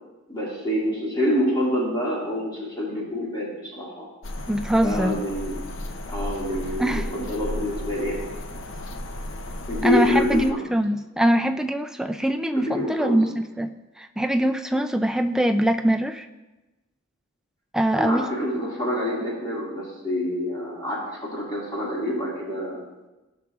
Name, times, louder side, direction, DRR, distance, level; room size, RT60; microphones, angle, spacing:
voice 1, 0.3-4.1 4.8-5.6 6.1-8.2 9.7-10.6 12.5-13.2 17.9-22.8, left 1 dB, 20° left, -6 dB, 2.1 m, -27 dB
sound 1, 4.2-10.5, left 1 dB, 65° left, 0.6 m, -34 dB
voice 2, 4.5-5.2 6.8-7.1 9.8-16.3 17.7-18.3, right 1 dB, 5° right, 6 dB, 0.3 m, -23 dB
16.5 x 6.0 x 2.4 m, 1.1 s
head